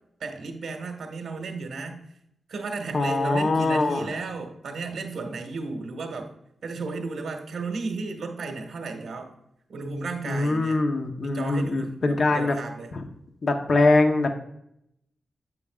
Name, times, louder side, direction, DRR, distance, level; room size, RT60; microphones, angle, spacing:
voice 1, 0.2-2.0 2.5-6.3 6.6-9.3 9.7-10.8 11.2-12.9, right 3 dB, 80° right, 4 dB, 1.5 m, -34 dB
voice 2, 2.9-4.1 10.2-12.5 12.9-13.0 13.4-14.4, left 2 dB, 50° left, 4 dB, 0.9 m, -23 dB
8.6 x 8.2 x 2.4 m, 0.76 s
wide cardioid pair, 125°, 0 cm